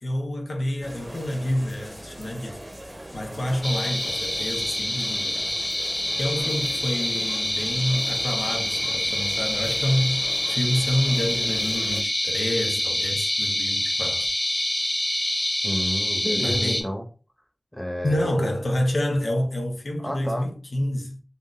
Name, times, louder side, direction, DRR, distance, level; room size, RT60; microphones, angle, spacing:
voice 1, 0.0-2.6 3.1-5.4 6.2-14.3 16.4-16.9 18.0-21.2, equal, 85° left, 0.6 m, -28 dB
sound 1, 0.8-12.0, right 1 dB, 30° right, 0.7 m, -41 dB
sound 2, 3.6-16.8, left 1 dB, 40° left, 0.6 m, -26 dB
voice 2, 15.6-17.1 17.7-18.3 20.0-20.5, equal, 10° left, 0.8 m, -30 dB
2.5 x 2.1 x 3.7 m
wide cardioid pair, 55°, 0 cm